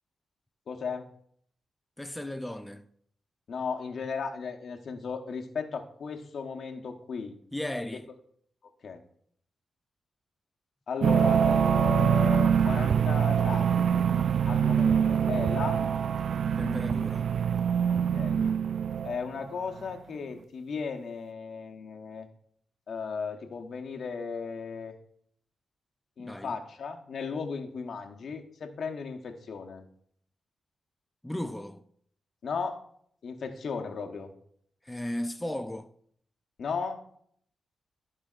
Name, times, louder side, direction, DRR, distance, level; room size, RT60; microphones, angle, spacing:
voice 1, 0.7-1.1 3.5-7.4 8.8-9.0 10.9-13.9 14.5-15.9 17.9-18.4 19.0-22.3 22.9-24.9 26.2-29.8 32.4-32.8 33.2-34.3 36.6-37.0, left 5 dB, 70° left, 0.9 m, -35 dB
voice 2, 2.0-2.8 7.5-8.1 16.6-17.3 26.2-26.6 31.2-31.8 34.8-35.9, left 1 dB, 10° left, 0.4 m, -35 dB
sound 1, 11.0-19.2, right 8 dB, 75° right, 0.3 m, -24 dB
13.5 x 4.9 x 2.4 m
cardioid pair, 75°, 0 cm